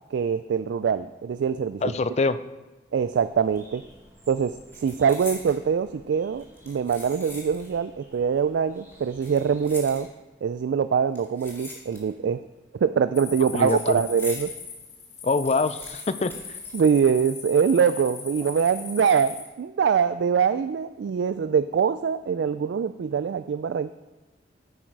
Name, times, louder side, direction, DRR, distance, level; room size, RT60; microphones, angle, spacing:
voice 1, 0.1-1.9 2.9-3.8 4.3-10.1 10.4-12.4 12.7-14.5 16.7-23.9, right 6 dB, 75° right, 12 dB, 0.3 m, -24 dB
voice 2, 1.8-2.4 13.5-14.0 15.2-16.6, left 3 dB, 35° left, 13 dB, 0.4 m, -25 dB
Bird, 3.1-10.0, right 1 dB, 15° right, 2.5 m, -53 dB
sound 1, 3.7-4.0 4.2-5.6 6.4-7.8 8.1-8.2 9.0-10.4 11.1-12.3 12.6-14.6 15.0-15.1 15.2-17.4 17.6-17.7 18.4-18.8 19.3-19.5, left 2 dB, 15° left, 2.0 m, -43 dB
sound 2, 13.1-19.4, left 5 dB, 65° left, 2.1 m, -39 dB
10.0 x 8.6 x 4.7 m, 1.1 s
head